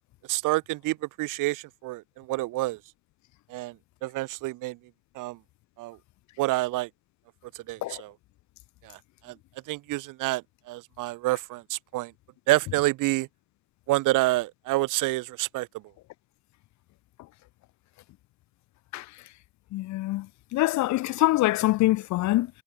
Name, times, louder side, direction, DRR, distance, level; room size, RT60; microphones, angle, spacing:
voice 1, 0.3-2.8 3.5-3.8 4.0-4.8 5.2-5.4 5.8-6.0 6.4-6.9 7.5-8.1 8.8-9.0 9.2-9.4 9.7-12.1 12.5-13.3 13.9-15.7, right 19 dB, 75° right, 5.6 m, -28 dB
voice 2, 19.7-20.3 20.5-22.5, left 17 dB, 60° left, 1.2 m, -24 dB
cardioid pair, 160°, 31 cm